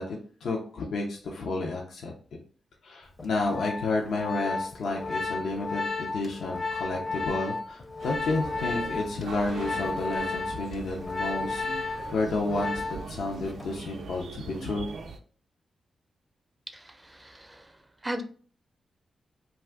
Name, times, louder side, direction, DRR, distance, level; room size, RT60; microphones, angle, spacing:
voice 1, 0.0-2.1 2.8-12.8 13.1-14.9, left 2 dB, 80° left, -1 dB, 0.5 m, -31 dB
Organ, 3.2-13.2 13.5-13.8, left 3 dB, 35° left, 0.6 m, -33 dB
sound 1, 8.0-15.2, right 4 dB, 80° right, 0.4 m, -41 dB
voice 2, 16.7-17.7 18.0-18.2, right 1 dB, 20° right, 6 dB, 0.5 m, -37 dB
2.4 x 2.4 x 3.4 m, 0.42 s
cardioid pair, 55°, 0 cm